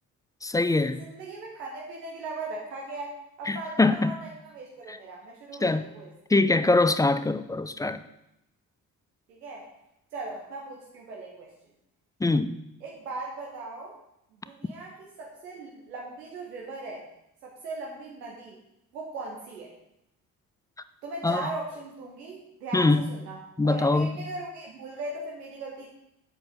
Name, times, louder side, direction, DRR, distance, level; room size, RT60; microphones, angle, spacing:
voice 1, 0.4-1.0 3.5-4.1 4.9-5.0 5.6-5.9 6.3-8.0 12.2-12.5 21.2-21.5 22.7-23.1 23.6-24.2, left 3 dB, 10° left, 12 dB, 0.4 m, -23 dB
voice 2, 1.0-6.1 9.3-9.7 10.1-11.5 12.8-13.9 14.4-17.0 17.4-18.6 18.9-19.7 21.0-23.4 23.6-25.9, right 2 dB, 75° right, -1 dB, 1.4 m, -38 dB
7.7 x 7.6 x 5.2 m, 0.84 s
figure-of-eight pair, 45°, 48 cm